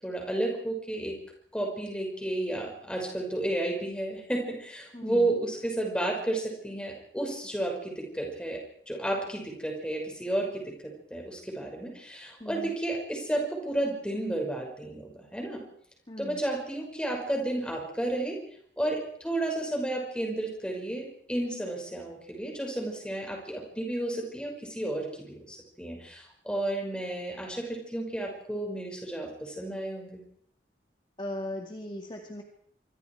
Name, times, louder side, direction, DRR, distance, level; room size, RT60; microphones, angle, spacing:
voice 1, 0.0-1.2 1.5-8.6 8.9-15.7 16.2-18.4 18.8-30.2, right 1 dB, 5° left, 1 dB, 6.0 m, -32 dB
voice 2, 4.9-5.3 12.4-12.8 16.1-16.4 31.2-32.4, left 1 dB, 25° left, 2 dB, 2.1 m, -38 dB
26.5 x 25.0 x 4.8 m, 0.64 s
head